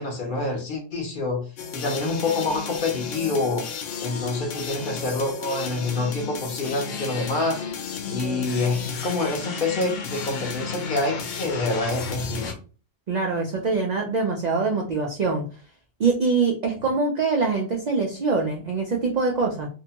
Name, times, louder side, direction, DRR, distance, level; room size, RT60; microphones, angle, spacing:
voice 1, 0.0-1.4 1.7-3.7 4.0-7.6 8.1-12.5, left 2 dB, 50° left, 1 dB, 0.7 m, -27 dB
sound 1, 1.6-12.5, left 6 dB, 75° left, 0.9 m, -33 dB
voice 2, 13.1-15.4 16.0-19.7, right 4 dB, 90° right, 1 dB, 0.3 m, -24 dB
2.7 x 2.2 x 2.8 m, 0.37 s
omnidirectional pair, 1.3 m